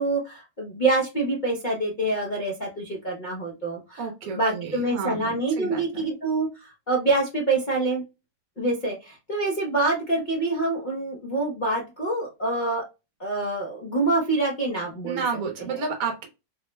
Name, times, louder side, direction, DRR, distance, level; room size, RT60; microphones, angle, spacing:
voice 1, 0.0-4.1 4.3-8.0 8.6-12.8 13.2-15.2, right 2 dB, 50° left, -2 dB, 0.6 m, -26 dB
voice 2, 4.0-6.1 15.0-16.3, right 5 dB, 65° right, 3 dB, 1.1 m, -31 dB
3.6 x 2.1 x 3.0 m, 0.27 s
omnidirectional pair, 1.8 m